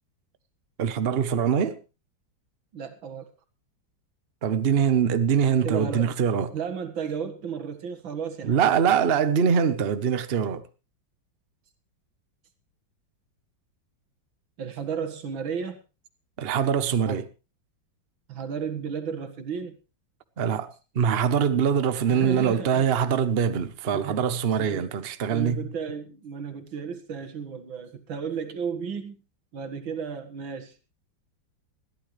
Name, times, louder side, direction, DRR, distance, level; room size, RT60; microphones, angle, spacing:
voice 1, 0.8-1.8 4.4-6.5 8.4-10.6 16.4-17.2 20.4-25.6, right 7 dB, 40° right, 0.9 m, -23 dB
voice 2, 2.7-3.3 5.6-6.1 6.5-8.8 14.6-15.8 17.1-17.3 18.3-19.8 22.1-22.9 23.9-24.3 24.6-24.9 25.3-29.2 29.5-30.7, right 6 dB, 85° right, 2.4 m, -34 dB
21.0 x 14.0 x 3.2 m
omnidirectional pair, 2.1 m